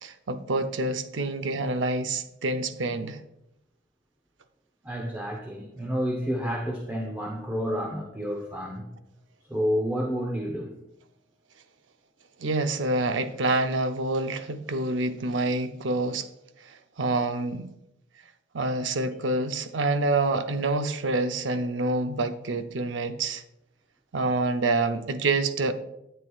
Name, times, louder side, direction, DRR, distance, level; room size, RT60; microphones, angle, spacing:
voice 1, 0.0-3.2 12.4-16.3 16.6-17.7 18.5-23.4 24.1-25.7, right 2 dB, 85° right, 0.6 m, -27 dB
voice 2, 4.8-8.9 9.5-10.7, equal, 10° right, 0.8 m, -30 dB
11.0 x 7.8 x 2.4 m
head